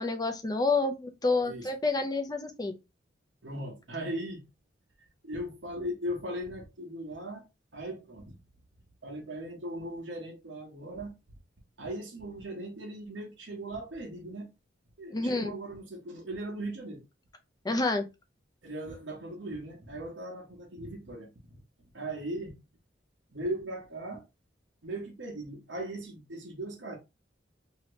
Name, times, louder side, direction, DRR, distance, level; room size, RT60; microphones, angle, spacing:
voice 1, 0.0-2.7 15.1-15.5 17.6-18.1, left 3 dB, 20° left, 0.5 m, -28 dB
voice 2, 3.4-4.5 5.0-7.4 7.7-8.4 9.0-11.1 11.8-14.5 15.0-17.0 18.6-21.6 21.9-22.6 23.3-24.3 24.8-27.0, right 1 dB, 70° right, 1.1 m, -38 dB
2.8 x 2.8 x 3.0 m
head